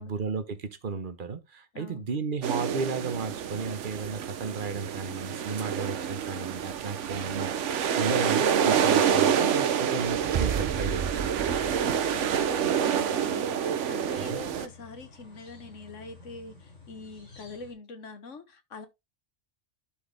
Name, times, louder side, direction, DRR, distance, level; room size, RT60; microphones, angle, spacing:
voice 1, 0.0-11.7 14.2-14.4, right 4 dB, 45° right, 1.2 m, -34 dB
voice 2, 1.7-2.2 12.1-18.9, left 3 dB, 90° left, 1.7 m, -44 dB
sound 1, 2.4-14.7, right 8 dB, 80° right, 1.1 m, -27 dB
sound 2, 10.0-12.8, right 8 dB, 60° right, 0.3 m, -33 dB
sound 3, 10.4-17.7, left 2 dB, 75° left, 6.2 m, -53 dB
11.5 x 4.7 x 3.4 m
omnidirectional pair, 1.2 m